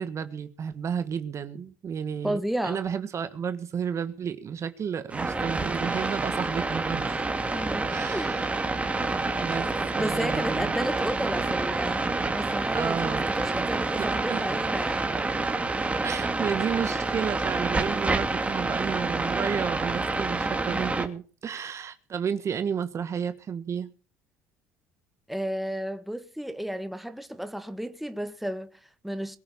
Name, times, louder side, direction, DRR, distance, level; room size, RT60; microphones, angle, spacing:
voice 1, 0.0-7.2 7.8-8.5 9.4-10.7 12.7-13.3 14.0-14.6 16.0-23.9, right 7 dB, 45° right, 1.5 m, -32 dB
voice 2, 2.2-2.8 7.5-8.3 10.0-12.1 12.3-15.1 20.7-20.9 25.3-29.4, right 1 dB, ahead, 1.8 m, -33 dB
sound 1, 5.1-21.1, right 3 dB, 20° right, 2.7 m, -28 dB
22.0 x 7.7 x 7.2 m
hypercardioid pair, 65°, 7 cm